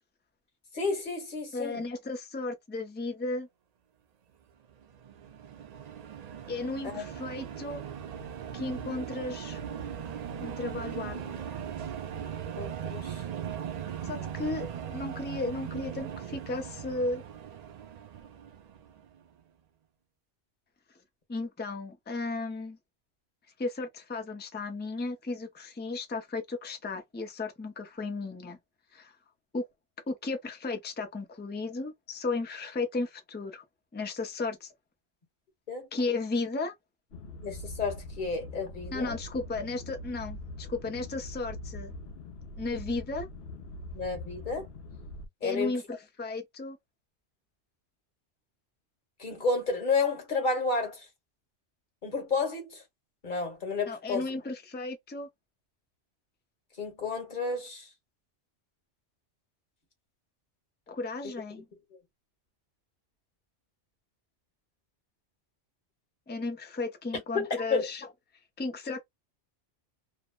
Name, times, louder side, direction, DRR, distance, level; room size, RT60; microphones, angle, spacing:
voice 1, 0.7-1.8 6.8-7.0 12.6-13.2 14.2-14.3 35.7-35.9 37.4-39.2 43.9-44.7 45.4-45.7 49.2-51.1 52.0-52.8 53.2-54.3 56.8-57.9 67.3-67.9, left 4 dB, 45° left, 1.2 m, -31 dB
voice 2, 1.5-3.5 6.5-7.8 8.5-9.6 10.4-11.4 14.0-17.2 21.3-22.8 23.6-28.6 28.9-29.2 29.5-29.6 30.1-33.6 33.9-34.7 35.9-36.7 38.9-41.9 42.6-43.3 45.4-46.8 53.9-55.3 60.9-61.7 66.3-68.1 68.6-69.0, left 3 dB, 15° left, 0.4 m, -34 dB
Plane Drone, 4.7-19.2, right 8 dB, 65° right, 0.4 m, -39 dB
sound 1, 37.1-45.3, left 1 dB, 65° left, 0.8 m, -43 dB
2.7 x 2.0 x 2.3 m
omnidirectional pair, 1.2 m